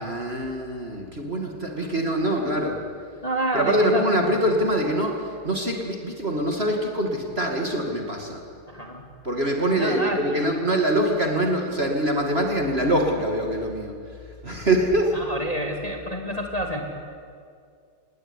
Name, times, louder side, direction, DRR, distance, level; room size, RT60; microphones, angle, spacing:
voice 1, 0.0-2.8 3.5-8.4 9.2-13.9 14.4-15.2, right 1 dB, 30° right, 2 dB, 2.6 m, -24 dB
voice 2, 3.2-4.1 8.7-9.0 9.8-10.5 15.1-16.8, right 1 dB, 15° left, 2 dB, 2.6 m, -28 dB
27.5 x 19.5 x 9.9 m, 2.2 s
omnidirectional pair, 2.3 m